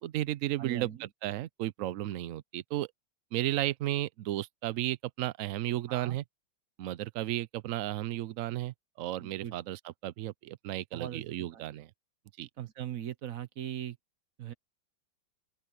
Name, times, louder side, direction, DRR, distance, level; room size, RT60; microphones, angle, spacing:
voice 1, 0.0-2.9 3.3-6.2 6.8-11.9 12.4-12.5, right 14 dB, 75° right, 0.7 m, -34 dB
voice 2, 0.6-1.1 5.9-6.2 9.2-9.5 10.9-11.6 12.6-14.0 14.4-14.5, right 10 dB, 55° right, 1.1 m, -40 dB
open air
omnidirectional pair, 2.0 m